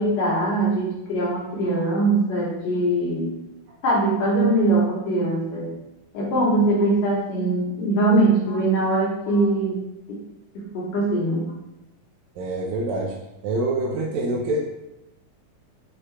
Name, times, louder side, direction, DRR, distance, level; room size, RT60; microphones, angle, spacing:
voice 1, 0.0-3.3 3.8-5.7 6.1-9.7 10.1-10.2 10.6-11.4, right 2 dB, 65° left, -5 dB, 1.9 m, -22 dB
voice 2, 12.4-13.1 13.4-14.6, right 2 dB, 75° right, -2 dB, 1.8 m, -25 dB
6.3 x 2.4 x 3.2 m, 0.91 s
omnidirectional pair, 3.6 m